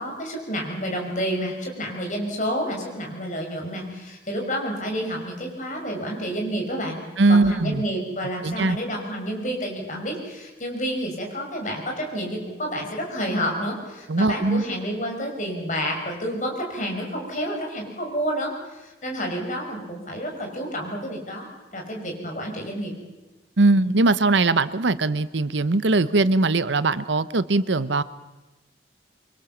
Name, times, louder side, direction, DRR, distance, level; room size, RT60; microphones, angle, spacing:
voice 1, 0.0-7.0 7.3-22.9, equal, 40° left, 0 dB, 5.9 m, -29 dB
voice 2, 7.2-7.8 8.4-8.8 14.1-14.6 23.6-28.0, right 3 dB, 85° right, 15 dB, 0.9 m, -20 dB
25.0 x 24.5 x 7.3 m, 1.1 s
head